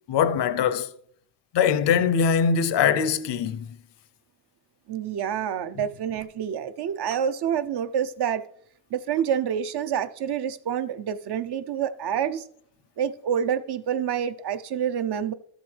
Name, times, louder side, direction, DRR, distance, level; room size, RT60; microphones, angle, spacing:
voice 1, 0.1-0.9 1.5-3.7, left 7 dB, 80° left, 0.7 m, -22 dB
voice 2, 4.9-8.5 8.9-12.4 13.0-15.3, right 8 dB, 70° right, 0.7 m, -27 dB
13.5 x 7.3 x 3.3 m
cardioid pair, 75°, 41 cm